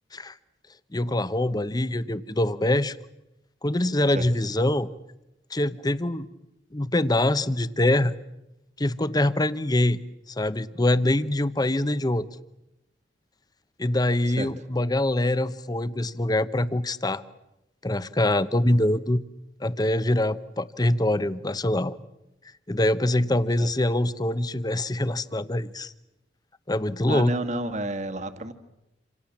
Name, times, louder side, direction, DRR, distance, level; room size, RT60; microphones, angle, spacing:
voice 1, 0.9-3.0 3.6-4.9 5.5-6.3 6.7-8.1 8.8-10.0 10.3-12.3 13.8-17.2 17.8-19.2 19.6-22.0 22.7-25.9 26.7-27.3, left 1 dB, 25° left, 14 dB, 1.0 m, -24 dB
voice 2, 27.1-28.5, right 2 dB, 40° right, 9 dB, 1.9 m, -30 dB
28.0 x 27.5 x 7.3 m, 0.89 s
head